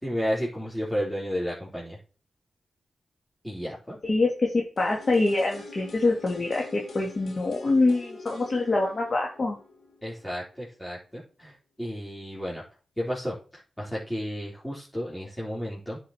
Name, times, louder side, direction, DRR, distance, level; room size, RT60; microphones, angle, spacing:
voice 1, 0.0-2.0 3.4-4.0 10.0-12.6 13.0-13.3 13.8-16.0, equal, 10° left, -6 dB, 4.2 m, -32 dB
voice 2, 4.0-9.6, left 2 dB, 50° left, -1 dB, 2.3 m, -25 dB
sound 1, 4.8-10.7 11.0-11.1, left 3 dB, 65° left, 3.1 m, -45 dB
9.9 x 5.6 x 4.5 m, 0.36 s
cardioid pair, 45°, 0 cm